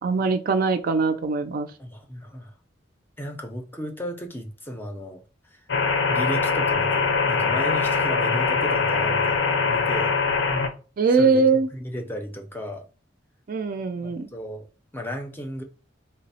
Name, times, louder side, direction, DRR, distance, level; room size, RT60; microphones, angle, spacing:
voice 1, 0.0-1.7 11.0-11.7 13.5-14.3, right 4 dB, 50° right, 8 dB, 0.4 m, -21 dB
voice 2, 1.8-2.5 3.2-5.2 5.5-5.6 6.1-10.1 11.2-11.4 11.7-12.8 14.0-14.7 14.9-15.6, equal, 10° left, 4 dB, 0.5 m, -34 dB
sound 1, 5.7-10.7, left 4 dB, 70° left, 0.6 m, -22 dB
3.3 x 2.0 x 4.0 m, 0.35 s
head